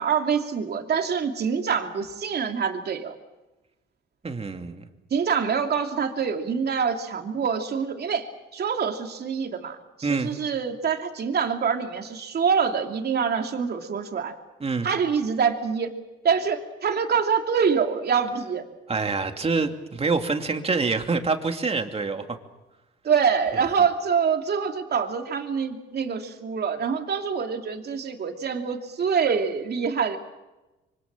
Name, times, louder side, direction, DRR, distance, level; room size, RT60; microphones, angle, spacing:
voice 1, 0.0-3.1 5.1-14.3 14.8-15.9 16.2-18.7 23.0-30.2, right 6 dB, 55° right, 4 dB, 2.9 m, -25 dB
voice 2, 4.2-4.8 10.0-10.3 14.6-14.9 18.9-22.4, right 4 dB, 30° right, 5 dB, 2.6 m, -26 dB
25.5 x 24.5 x 7.5 m, 1.1 s
cardioid pair, 90°, 20 cm